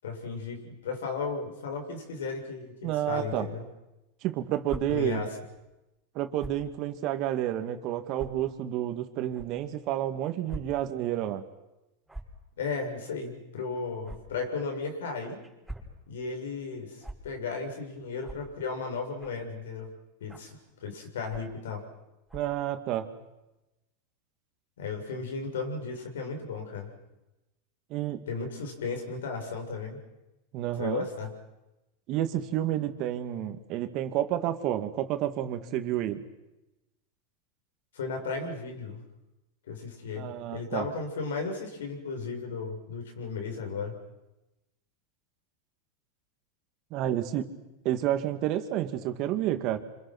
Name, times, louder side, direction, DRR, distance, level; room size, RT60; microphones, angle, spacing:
voice 1, 0.0-3.6 4.9-5.4 12.6-15.4 16.1-19.9 20.2-20.6 20.8-21.8 24.8-26.9 28.3-30.0 30.8-31.3 37.9-39.0 39.7-43.9, left 4 dB, 85° left, 3 dB, 6.9 m, -35 dB
voice 2, 2.8-3.5 4.2-5.2 6.1-11.4 22.3-23.1 27.9-28.2 30.5-31.0 32.1-36.2 40.2-40.9 46.9-47.5 47.8-49.8, right 12 dB, 50° right, 8 dB, 2.5 m, -30 dB
sound 1, 4.6-4.8 6.4-6.6 7.4-7.5 8.1-8.3 9.3-9.5 10.5-10.6 10.9-11.1 12.1-12.4 14.0-14.2 15.4-15.9 17.0-17.2 18.2-18.4 19.2-19.4 20.3-20.5 21.3-21.6 22.3-22.5, right 1 dB, ahead, 6.0 m, -41 dB
28.0 x 26.5 x 6.3 m, 0.98 s
hypercardioid pair, 105°, 0 cm